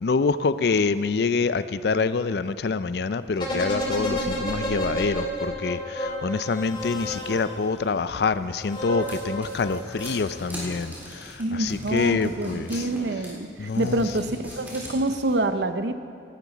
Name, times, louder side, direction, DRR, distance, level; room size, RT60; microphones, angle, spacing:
voice 1, 0.0-12.8 13.6-14.0, left 4 dB, 60° left, 14 dB, 0.4 m, -26 dB
sound 1, 3.4-7.8 8.6-10.4 10.7-10.8, equal, 25° left, 2.0 m, -31 dB
sound 2, 8.1-15.4, equal, 10° right, 3.6 m, -40 dB
voice 2, 11.4-15.9, right 2 dB, 70° right, 10 dB, 0.6 m, -26 dB
17.5 x 12.0 x 4.0 m, 2.5 s
head